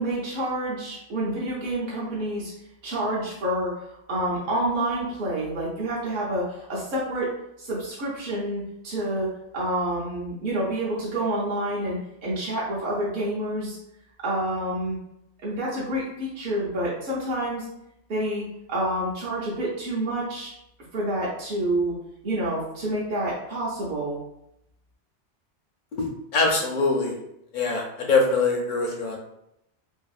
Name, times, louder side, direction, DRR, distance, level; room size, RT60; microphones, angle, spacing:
voice 1, 0.0-2.5 2.8-7.3 7.6-9.3 9.5-13.8 14.2-15.0 15.4-17.7 18.1-18.4 18.7-20.5 20.9-22.0 22.2-24.2, right 1 dB, 55° right, -7 dB, 0.7 m, -28 dB
voice 2, 26.0-27.1 27.5-29.2, left 3 dB, 60° left, 0 dB, 0.5 m, -23 dB
2.7 x 2.2 x 2.4 m, 0.82 s
omnidirectional pair, 1.2 m